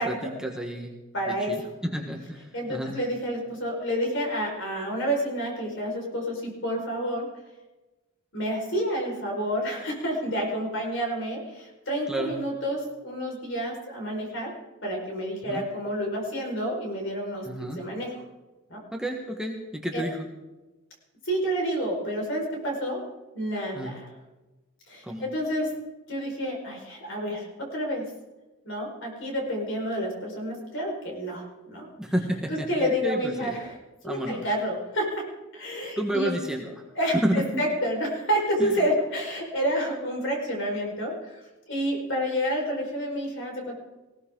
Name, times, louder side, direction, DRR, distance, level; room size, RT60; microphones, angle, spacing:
voice 1, 0.4-0.9 1.3-1.6 1.9-3.0 12.1-12.3 15.4-15.6 17.4-17.8 18.9-20.2 23.7-23.9 25.0-25.2 32.0-33.5 34.0-34.4 36.0-36.7 37.2-37.6 38.6-38.7, right 1 dB, 5° right, 0 dB, 1.3 m, -30 dB
voice 2, 1.1-1.7 2.5-7.3 8.3-14.5 14.8-17.4 17.7-18.1 18.7-18.8 19.9-20.0 21.2-23.0 23.3-24.1 24.9-25.7 26.1-28.1 28.6-31.9 32.5-33.8 34.0-35.2 35.5-36.3 36.9-41.4 41.7-43.7, equal, 60° left, 0 dB, 5.1 m, -29 dB
19.5 x 17.0 x 3.9 m, 1.1 s
head